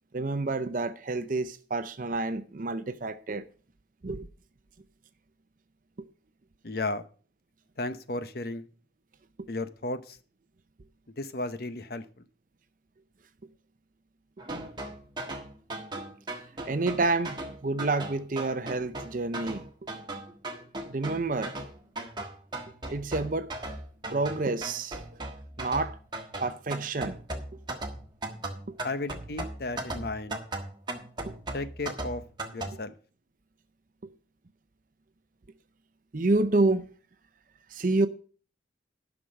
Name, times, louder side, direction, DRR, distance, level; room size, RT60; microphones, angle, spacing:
voice 1, 0.1-3.4 4.0-4.3 6.0-6.1 9.4-9.5 16.7-19.7 20.9-21.5 22.9-23.5 24.1-25.0 25.6-26.0 26.4-27.2 28.7-28.8 31.3-31.4 34.0-34.1 36.1-36.9 37.7-38.1, right 2 dB, 45° right, 0.6 m, -28 dB
voice 2, 6.6-7.0 7.8-8.7 9.5-10.2 11.2-12.2 28.8-30.4 31.5-32.2 32.5-32.9, left 2 dB, 50° left, 0.8 m, -34 dB
sound 1, 14.4-32.7, right 2 dB, 25° right, 1.5 m, -38 dB
11.0 x 6.1 x 6.3 m
head